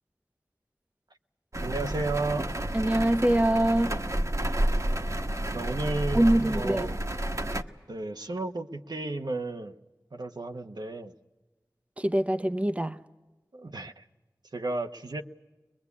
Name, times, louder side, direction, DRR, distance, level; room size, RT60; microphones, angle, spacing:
sound 1, 1.5-7.6, right 1 dB, 45° right, 1.2 m, -30 dB
voice 1, 1.6-2.5 5.5-7.0 7.9-9.7 10.1-11.1 13.5-14.0 14.5-15.2, right 2 dB, 75° right, 1.0 m, -33 dB
voice 2, 2.7-4.0 6.1-6.9 12.0-13.0, right 1 dB, 20° right, 0.8 m, -24 dB
23.5 x 21.5 x 8.4 m
wide cardioid pair, 40°, 7 cm